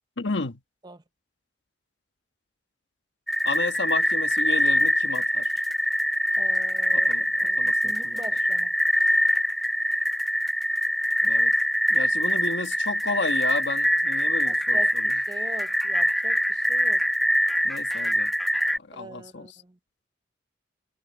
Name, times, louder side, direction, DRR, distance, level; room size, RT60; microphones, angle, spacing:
voice 1, 0.2-0.6 3.4-5.5 6.9-8.2 11.2-11.5 11.9-14.8 17.6-18.3 18.8-19.5, left 3 dB, 70° left, 1.4 m, -32 dB
sound 1, 3.3-18.8, equal, ahead, 0.4 m, -24 dB
voice 2, 6.4-8.7 14.4-17.0 18.9-19.8, right 2 dB, 20° right, 0.8 m, -43 dB
head